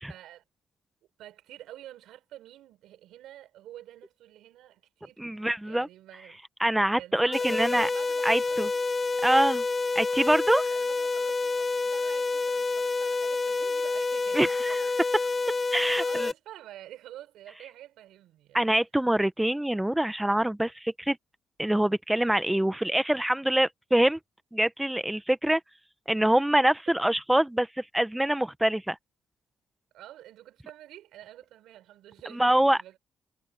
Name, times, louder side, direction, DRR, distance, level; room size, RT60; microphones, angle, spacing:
voice 1, 0.1-0.4 1.2-6.4 7.0-8.9 10.2-14.9 16.0-18.6 26.9-27.0 29.9-33.0, right 13 dB, 85° right, 5.5 m, -48 dB
voice 2, 5.2-5.9 6.6-7.9 8.2-8.7 9.2-9.6 9.9-10.6 14.3-14.8 15.7-16.3 18.5-21.2 21.6-24.2 24.5-25.6 26.1-29.0 32.3-32.8, right 1 dB, 5° right, 1.0 m, -25 dB
sound 1, 7.3-16.3, left 3 dB, 30° left, 1.4 m, -28 dB
cardioid pair, 90°, 0 cm